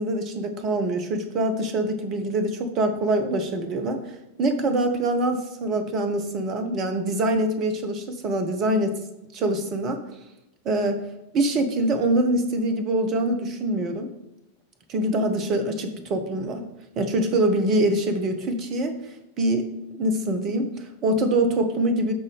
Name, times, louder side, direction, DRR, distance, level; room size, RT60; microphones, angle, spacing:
voice 1, 0.0-4.0 4.4-9.0 9.3-10.0 10.6-11.0 11.3-14.1 14.9-16.6 17.0-18.9 19.4-19.7 19.9-22.1, right 1 dB, 35° right, 8 dB, 1.1 m, -24 dB
13.0 x 4.3 x 3.2 m, 0.90 s
figure-of-eight pair, 90°, 0 cm